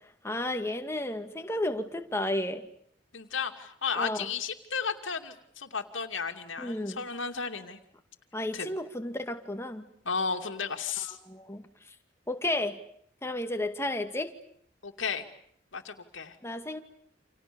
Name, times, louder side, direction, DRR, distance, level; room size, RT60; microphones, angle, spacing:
voice 1, 0.2-2.7 4.0-4.2 6.6-7.0 8.3-9.9 11.0-11.6 12.3-12.8 13.2-14.3 16.4-16.8, left 1 dB, 15° left, 6 dB, 2.2 m, -32 dB
voice 2, 3.1-7.8 8.5-8.7 10.0-11.2 14.8-15.2 15.7-16.3, left 5 dB, 90° left, 5 dB, 2.6 m, -33 dB
29.5 x 27.5 x 7.1 m, 0.66 s
head